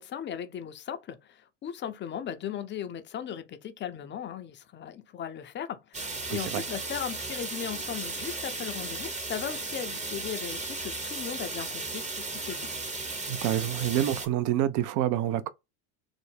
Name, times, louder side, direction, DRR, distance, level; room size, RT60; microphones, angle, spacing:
voice 1, 0.0-12.7, left 9 dB, 25° left, 0.5 m, -37 dB
sound 1, 5.9-14.3, right 3 dB, 15° right, 0.7 m, -35 dB
voice 2, 6.3-6.6 13.3-15.5, right 12 dB, 45° right, 0.4 m, -27 dB
3.4 x 2.0 x 3.2 m
hypercardioid pair, 90°, 44 cm